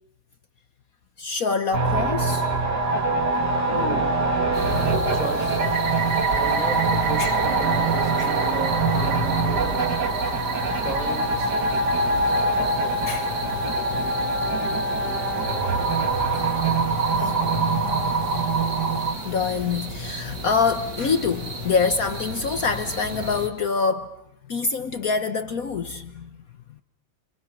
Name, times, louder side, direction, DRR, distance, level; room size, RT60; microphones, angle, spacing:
voice 1, 1.2-2.5 7.2-7.4 8.2-8.4 10.7-10.8 13.1-13.4 14.9-15.3 15.9-16.1 17.2-17.5 19.1-24.1 24.4-26.3, left 5 dB, 55° left, 1.5 m, -26 dB
sound 1, 1.7-19.1, right 3 dB, 70° right, 2.9 m, -23 dB
voice 2, 3.6-4.2 4.8-5.6 6.3-9.9 10.7-11.7, right 1 dB, 25° right, 5.2 m, -35 dB
sound 2, 4.5-23.5, equal, 90° right, 3.7 m, -34 dB
29.5 x 26.0 x 6.2 m
omnidirectional pair, 1.8 m